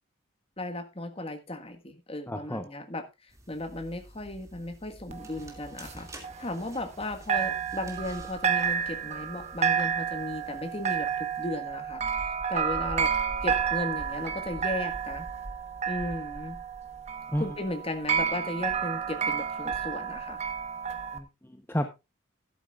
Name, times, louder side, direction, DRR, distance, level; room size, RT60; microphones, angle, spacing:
voice 1, 0.6-13.1 13.4-15.3 15.9-16.6 17.4-20.4, left 1 dB, 30° left, 7 dB, 1.5 m, -36 dB
voice 2, 2.3-2.7 17.3-17.5 21.1-21.9, equal, 10° left, 6 dB, 0.8 m, -31 dB
sound 1, 3.3-11.5, right 1 dB, 15° right, 2.2 m, -50 dB
sound 2, 5.1-7.0 7.3-21.2, right 7 dB, 35° right, 1.1 m, -31 dB
13.0 x 12.0 x 2.4 m, 0.24 s
head